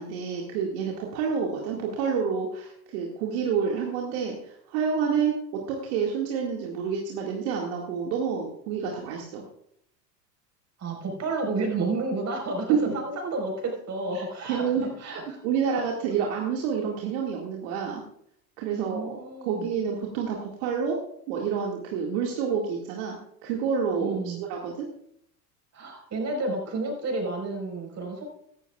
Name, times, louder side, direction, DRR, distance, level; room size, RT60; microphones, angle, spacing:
voice 1, 0.0-9.4 12.7-12.9 14.1-14.2 14.5-18.0 18.6-19.2 19.5-21.0 21.3-24.9, right 6 dB, 60° right, -1 dB, 2.1 m, -28 dB
voice 2, 10.8-15.4 15.7-15.8 18.7-19.7 24.0-24.4 25.7-28.2, right 3 dB, 35° right, 2 dB, 4.6 m, -31 dB
16.5 x 13.0 x 2.4 m, 0.68 s
hypercardioid pair, 80°, 49 cm